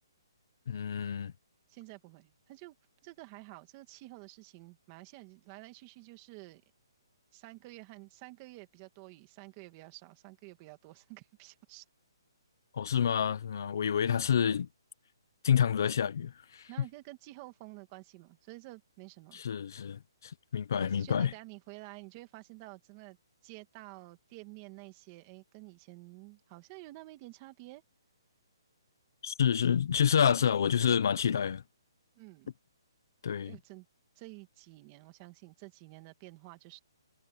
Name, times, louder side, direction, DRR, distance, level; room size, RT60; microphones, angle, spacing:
voice 1, 0.7-1.3 12.7-14.7 15.4-16.7 19.3-21.3 29.2-31.6 33.2-33.5, left 8 dB, 45° left, 1.0 m, -28 dB
voice 2, 1.7-2.8 3.0-6.6 7.3-11.8 16.7-19.4 20.8-23.2 23.4-27.8 32.2-32.5 33.4-33.9 34.2-36.8, right 21 dB, 20° right, 2.2 m, -50 dB
hypercardioid pair, 175°, 3 cm